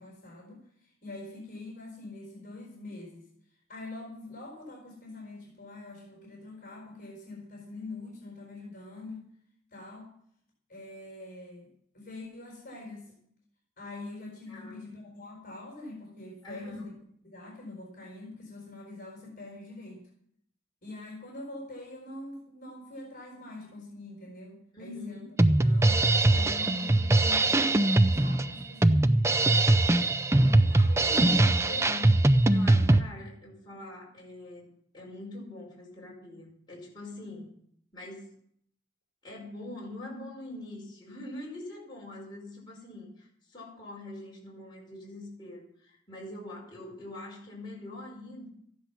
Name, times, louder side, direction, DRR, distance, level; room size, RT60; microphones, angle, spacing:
voice 1, 0.0-3.2 3.7-9.3 9.7-10.1 10.7-13.1 13.8-16.9 17.3-20.1 20.8-26.0 26.3-29.2 30.4-31.9 32.5-33.0, left 2 dB, 45° left, -2 dB, 4.4 m, -44 dB
voice 2, 14.5-14.8 16.4-16.9 24.7-25.3 31.7-32.1 32.5-34.7 34.9-37.5 37.9-38.3 39.2-48.5, left 2 dB, 25° left, -4 dB, 5.1 m, -43 dB
Drum kit, 25.4-33.0, right 2 dB, 15° right, 0.5 m, -22 dB
14.0 x 10.5 x 6.0 m, 0.68 s
head